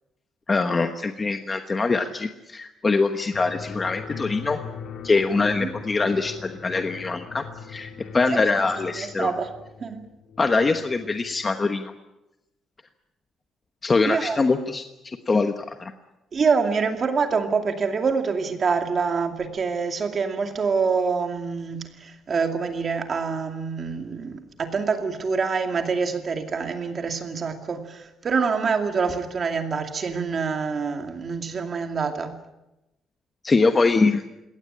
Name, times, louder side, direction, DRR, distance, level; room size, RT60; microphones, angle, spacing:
voice 1, 0.5-4.6 5.0-9.3 10.4-11.9 13.8-15.9 33.4-34.2, left 3 dB, 20° left, 7 dB, 1.1 m, -23 dB
sound 1, 3.3-11.5, left 6 dB, 60° left, 2.6 m, -40 dB
voice 2, 5.3-5.7 8.3-8.6 8.9-9.5 9.8-10.0 14.1-14.4 16.3-32.3, right 5 dB, 35° right, 5 dB, 2.4 m, -26 dB
21.0 x 18.0 x 10.0 m, 0.96 s
cardioid pair, 155°, 0 cm